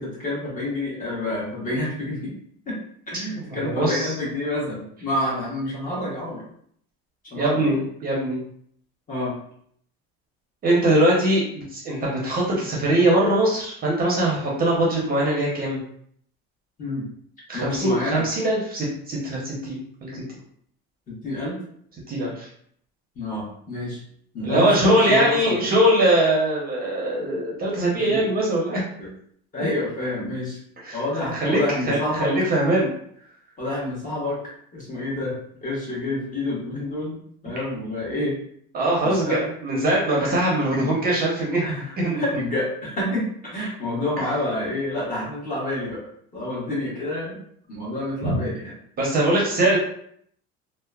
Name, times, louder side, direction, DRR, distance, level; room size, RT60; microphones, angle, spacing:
voice 1, 0.0-2.3 2.7-2.8 3.1-6.4 7.2-7.8 9.1-9.3 16.8-17.0 17.5-18.3 21.1-21.6 23.1-24.0 24.3-25.6 27.9-28.2 29.0-29.1 29.5-30.6 30.9-32.3 33.6-34.4 34.7-37.2 37.4-38.4 39.0-39.4 40.2-41.2 41.6-46.0 46.3-47.4 47.7-48.7, left 1 dB, 25° left, -5 dB, 1.1 m, -28 dB
voice 2, 3.5-4.1 7.3-8.4 10.6-15.8 17.5-20.2 22.1-22.5 24.4-28.8 30.8-31.6 31.9-33.0 38.7-42.2 48.2-48.3 49.0-49.8, right 1 dB, 30° right, -4 dB, 0.7 m, -22 dB
2.8 x 2.0 x 2.3 m, 0.65 s
cardioid pair, 135°, 30 cm